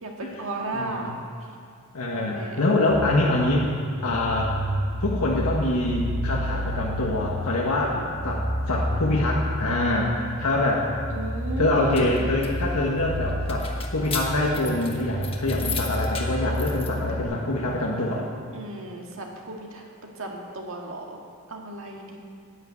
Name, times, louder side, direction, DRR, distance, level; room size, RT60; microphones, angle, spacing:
voice 1, 0.0-1.2 2.1-2.6 7.8-8.1 11.1-12.2 16.4-16.9 18.5-19.9 20.2-21.2 21.5-22.2, right 1 dB, 65° right, 0 dB, 1.9 m, -35 dB
voice 2, 0.7-1.2 1.9-3.7 4.0-4.6 5.0-10.9 11.6-18.3, left 2 dB, 85° left, -3 dB, 1.4 m, -25 dB
sound 1, 2.9-17.2, equal, 45° right, 3.4 m, -30 dB
sound 2, 11.7-16.9, left 6 dB, 25° left, 1.2 m, -36 dB
10.0 x 9.8 x 8.3 m, 2.2 s
head